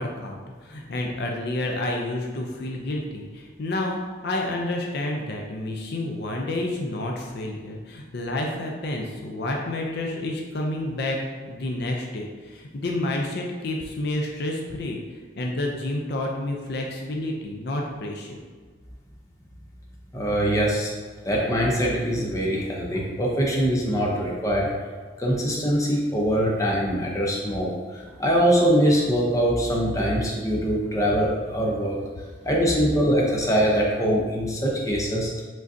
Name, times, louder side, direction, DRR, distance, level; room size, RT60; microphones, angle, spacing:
voice 1, 0.0-15.0 15.4-18.4, left 1 dB, 60° left, 0 dB, 0.5 m, -29 dB
voice 2, 20.1-20.9 21.2-24.7 25.2-32.0 32.4-35.3, equal, 15° left, -3 dB, 0.7 m, -23 dB
5.0 x 3.8 x 2.7 m, 1.5 s
head